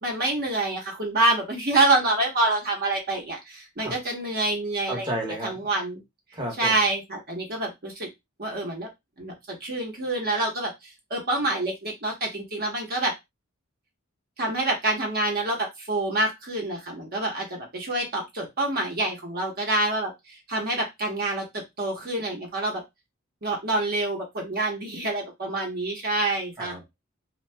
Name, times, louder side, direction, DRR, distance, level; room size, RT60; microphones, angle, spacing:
voice 1, 0.0-5.1 5.4-6.0 6.6-8.1 8.4-8.9 9.2-13.1 14.4-22.8 23.4-26.8, right 2 dB, 50° right, 0.9 m, -27 dB
voice 2, 4.8-5.7 6.3-6.8 26.6-26.9, right 1 dB, 20° right, 0.9 m, -32 dB
2.7 x 2.2 x 3.3 m
head